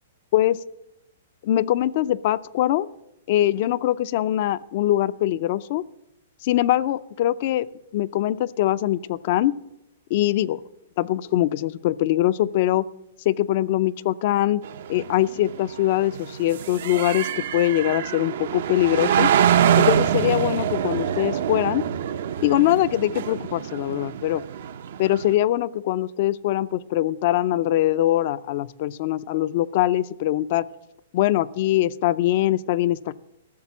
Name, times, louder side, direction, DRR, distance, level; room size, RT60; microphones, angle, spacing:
voice 1, 1.4-2.9 3.3-5.8 6.4-7.7 7.9-9.6 10.1-10.6 11.0-12.9 13.3-14.6 14.9-19.3 19.7-21.8 22.4-24.4 25.0-30.7 31.1-33.2, left 14 dB, 50° left, 17 dB, 0.4 m, -22 dB
sound 1, 14.6-25.3, right 9 dB, 65° right, 0.6 m, -25 dB
14.0 x 6.7 x 7.1 m, 0.86 s
hypercardioid pair, 150°, 0 cm